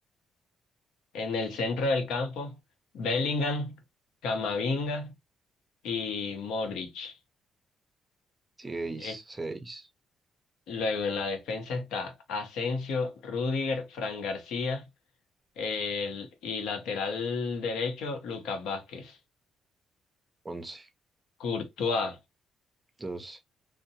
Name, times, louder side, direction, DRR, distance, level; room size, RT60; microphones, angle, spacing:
voice 1, 1.1-2.5 2.9-3.7 4.2-5.1 5.8-7.1 9.0-9.1 10.7-14.8 15.6-19.2 21.4-22.2, left 4 dB, 85° left, 0.8 m, -31 dB
voice 2, 8.6-9.9 20.4-20.9 23.0-23.4, right 3 dB, 20° right, 0.5 m, -38 dB
2.6 x 2.1 x 2.7 m
cardioid pair, 90°, 0 cm